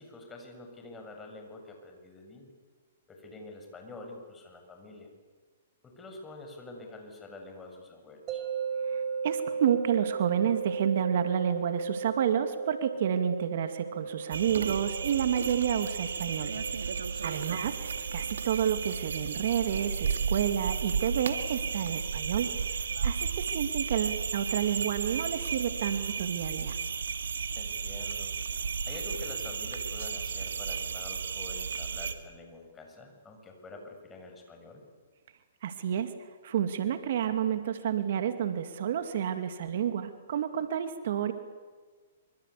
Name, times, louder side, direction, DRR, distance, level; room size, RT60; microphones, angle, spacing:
voice 1, 0.0-2.5 3.1-5.1 5.8-8.4 17.1-17.4 27.6-28.3 28.8-34.8, left 2 dB, 15° left, 3 dB, 7.0 m, -46 dB
sound 1, 8.3-21.3, right 5 dB, 30° right, 5.0 m, -38 dB
voice 2, 8.9-16.5 17.2-22.5 23.0-26.8 35.6-36.1 36.4-41.3, right 9 dB, 60° right, 8 dB, 2.4 m, -30 dB
sound 2, 14.3-32.1, right 6 dB, 80° right, 2.3 m, -33 dB
26.0 x 25.5 x 8.5 m, 1.5 s
hypercardioid pair, 130°, 0 cm